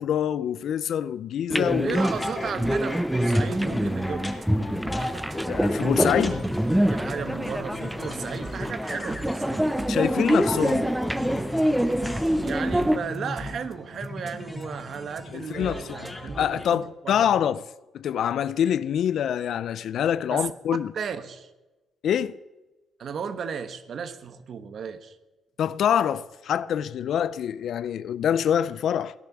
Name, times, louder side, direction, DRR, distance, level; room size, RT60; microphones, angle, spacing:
voice 1, 0.0-2.0 5.5-6.5 9.9-10.9 15.3-16.1 16.4-17.7 17.9-20.9 22.0-22.4 25.6-29.1, left 9 dB, 70° left, 0.5 m, -25 dB
sound 1, 1.5-13.0, equal, 5° right, 0.7 m, -25 dB
voice 2, 1.8-4.3 6.6-9.7 12.4-17.2 20.3-20.5 20.9-21.5 23.0-25.2, right 6 dB, 55° right, 1.3 m, -34 dB
sound 2, 1.9-16.8, left 1 dB, 15° left, 2.7 m, -36 dB
sound 3, 2.6-3.0 3.3-3.9 4.2-4.4 4.8-6.6 6.9-7.5 7.8-8.0 8.3-10.1 10.5-11.0 11.3-11.6 11.9-13.7 14.0-14.6 14.9-15.2 15.5-16.7, right 3 dB, 35° right, 1.3 m, -42 dB
16.5 x 10.5 x 7.2 m
cardioid pair, 90°, 0 cm